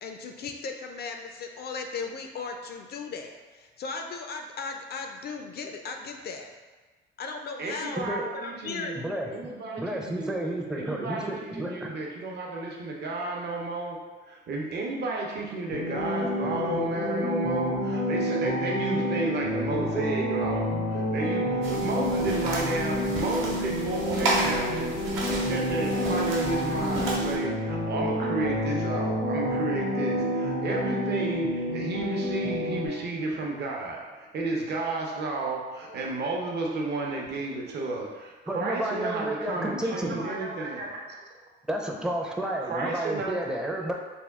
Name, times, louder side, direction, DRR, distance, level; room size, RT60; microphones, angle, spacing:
voice 1, 0.0-6.5 7.2-8.0 8.3-8.9, left 4 dB, 55° left, 4 dB, 0.4 m, -37 dB
voice 2, 7.6-14.0 14.2-41.2 42.6-43.3, right 2 dB, 55° right, -1 dB, 0.7 m, -32 dB
voice 3, 8.9-9.5 9.8-12.0 38.5-40.2 41.7-43.9, right 1 dB, 5° right, 0 dB, 0.5 m, -31 dB
sound 1, 15.7-32.9, equal, 85° left, 1.0 m, -29 dB
sound 2, 21.6-27.4, right 2 dB, 85° right, 1.0 m, -32 dB
3.5 x 2.3 x 3.5 m, 1.3 s
cardioid pair, 90°, 20 cm